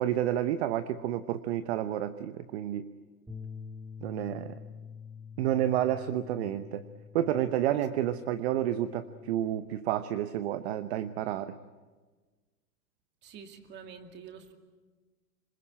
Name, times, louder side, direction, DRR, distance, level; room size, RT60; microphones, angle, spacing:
voice 1, 0.0-2.9 4.0-4.6 5.4-6.8 7.1-11.6, right 11 dB, 40° right, 12 dB, 0.9 m, -30 dB
Bass guitar, 3.3-9.5, left 6 dB, 5° right, 2.2 m, -47 dB
voice 2, 13.2-14.5, right 6 dB, 20° right, 6 dB, 2.3 m, -47 dB
26.5 x 22.5 x 8.7 m, 1.3 s
hypercardioid pair, 150°, 48 cm